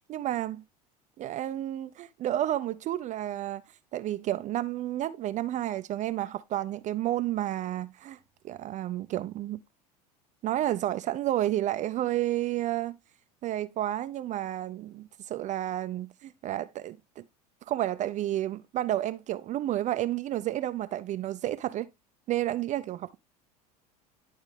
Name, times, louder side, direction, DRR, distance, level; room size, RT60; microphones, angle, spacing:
voice 1, 0.1-0.6 1.2-3.6 3.9-8.2 8.4-9.6 10.4-13.0 13.4-17.2 17.7-21.9 22.3-23.2, right 13 dB, 35° right, 0.5 m, -31 dB
11.0 x 4.4 x 3.3 m
hypercardioid pair, 80°, 21 cm